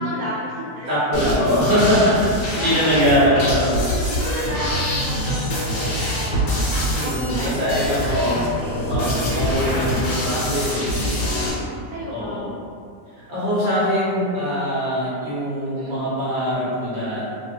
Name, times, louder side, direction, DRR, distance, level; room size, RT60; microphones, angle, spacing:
voice 1, 0.0-3.2 3.7-6.5 7.0-10.0 10.9-12.4 15.6-16.0, equal, 70° right, -6 dB, 1.0 m, -34 dB
voice 2, 0.9-4.1 6.9-8.4 8.8-11.5 12.1-12.5 13.2-17.3, equal, 40° right, -10 dB, 0.8 m, -22 dB
sound 1, 1.1-11.5, equal, 65° left, 1.1 m, -24 dB
2.6 x 2.4 x 2.8 m, 2.3 s
omnidirectional pair, 1.7 m